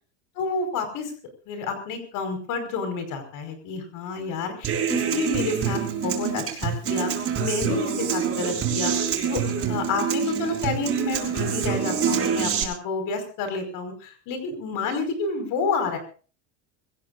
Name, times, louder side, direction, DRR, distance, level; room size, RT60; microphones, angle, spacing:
voice 1, 0.4-1.1 1.5-7.1 7.4-16.0, left 4 dB, 55° left, 7 dB, 5.3 m, -29 dB
Human voice / Acoustic guitar, 4.6-12.6, right 7 dB, 35° right, 5.9 m, -26 dB
25.5 x 17.0 x 2.6 m, 0.39 s
supercardioid pair, 130°, 38 cm